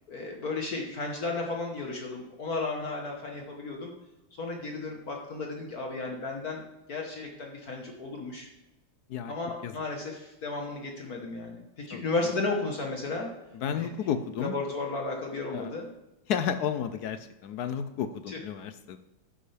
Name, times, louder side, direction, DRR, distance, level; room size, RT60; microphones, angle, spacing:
voice 1, 0.1-3.9 4.4-6.6 6.9-8.5 9.3-11.6 11.9-13.3 13.7-13.9 14.4-15.9 18.3-18.4, left 3 dB, 50° left, 1 dB, 1.6 m, -34 dB
voice 2, 13.6-14.5 15.5-15.7 16.3-19.0, left 8 dB, 70° left, 10 dB, 1.0 m, -32 dB
11.0 x 9.8 x 3.3 m, 0.96 s
omnidirectional pair, 2.1 m